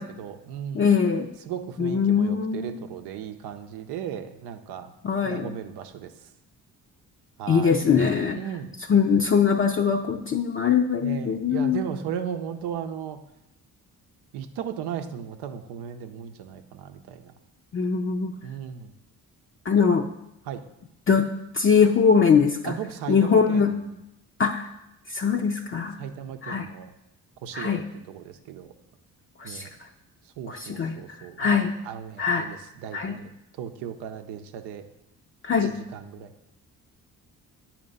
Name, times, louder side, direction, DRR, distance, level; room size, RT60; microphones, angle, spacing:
voice 1, 0.0-0.9 1.5-4.9 5.2-6.1 7.4-7.9 8.3-8.8 11.0-13.2 14.3-17.3 18.4-18.9 20.5-20.6 22.6-23.9 26.0-26.9 27.4-28.7 29.4-29.7 30.4-31.6 31.8-33.3 33.6-34.8 35.6-36.3, right 9 dB, 90° right, 7 dB, 0.7 m, -36 dB
voice 2, 0.7-1.3 1.8-2.8 5.0-5.6 7.5-8.4 8.9-11.8 17.7-18.3 19.7-20.1 21.1-21.3 21.5-22.8 23.1-23.7 24.4-24.7 25.1-26.0 26.4-26.7 27.5-27.8 29.4-29.7 30.5-31.0 31.4-31.7 32.2-32.5 32.9-33.2 35.4-35.7, left 6 dB, 35° left, 2 dB, 0.5 m, -22 dB
8.8 x 2.9 x 5.3 m, 0.88 s
supercardioid pair, 65°, 39 cm